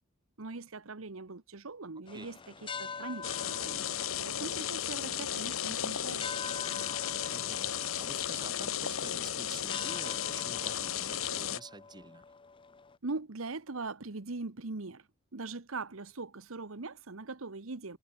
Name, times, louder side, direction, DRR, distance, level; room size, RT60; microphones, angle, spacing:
voice 1, 0.4-2.4 2.8-6.2 13.0-15.1 15.3-18.0, right 3 dB, 80° right, 1.2 m, -41 dB
voice 2, 1.9-2.3 7.2-12.2, right 3 dB, 20° right, 1.1 m, -49 dB
sound 1, 2.1-13.0, left 5 dB, 25° left, 0.6 m, -45 dB
sound 2, 3.2-11.6, left 10 dB, 75° left, 1.0 m, -34 dB
head